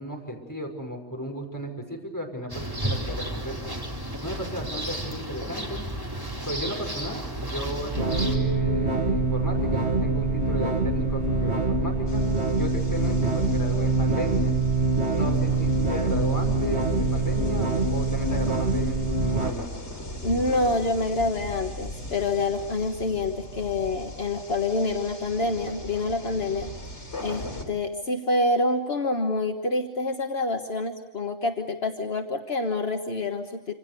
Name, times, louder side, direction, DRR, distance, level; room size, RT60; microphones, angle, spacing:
voice 1, 0.0-3.7 4.2-5.8 6.4-12.3 12.5-14.5 15.1-19.7, equal, 15° left, 1 dB, 5.8 m, -34 dB
sound 1, 2.5-8.4, right 1 dB, 20° right, 3.8 m, -32 dB
sound 2, 8.0-19.5, right 3 dB, 70° right, 2.1 m, -24 dB
sound 3, 12.1-27.6, left 1 dB, 80° left, 4.5 m, -39 dB
voice 2, 20.2-26.7 27.2-33.7, left 2 dB, 60° left, 4 dB, 1.7 m, -27 dB
27.0 x 27.0 x 6.9 m, 1.1 s
omnidirectional pair, 1.2 m